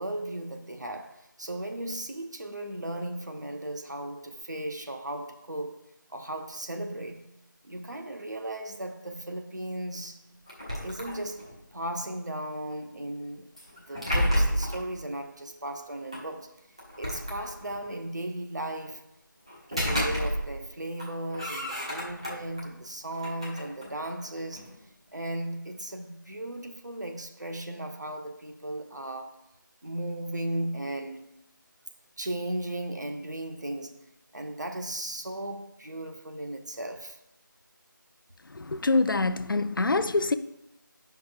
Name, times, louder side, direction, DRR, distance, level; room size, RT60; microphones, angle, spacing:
voice 1, 0.0-5.8 6.1-7.3 7.6-10.2 10.8-13.5 13.9-16.5 17.0-19.0 19.7-24.7 25.1-29.4 29.8-31.3 32.2-34.0 34.3-37.2, right 1 dB, 60° right, 0.9 m, -36 dB
sound 1, 10.5-11.6 13.6-14.9 16.1-16.2 16.8-17.9 19.5-20.7 21.0-22.6 23.1-24.7, equal, 15° right, 0.6 m, -31 dB
voice 2, 38.4-40.3, left 3 dB, 85° left, 0.5 m, -25 dB
9.8 x 5.7 x 2.4 m
figure-of-eight pair, 180°, 11 cm